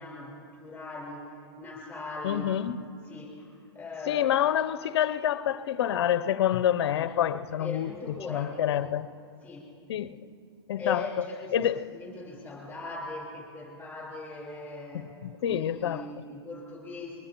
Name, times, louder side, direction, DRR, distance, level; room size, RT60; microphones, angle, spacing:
voice 1, 0.0-2.5 3.1-4.3 6.9-7.1 7.5-8.9 9.4-9.7 10.8-15.1 15.5-17.3, left 3 dB, 10° left, 4.1 m, -39 dB
voice 2, 2.2-2.8 4.1-7.9 8.3-9.1 9.9-10.2 10.7-11.0 11.5-11.9 15.2-16.1, left 10 dB, 70° left, 0.6 m, -27 dB
22.0 x 19.5 x 3.0 m
hypercardioid pair, 135°, 14 cm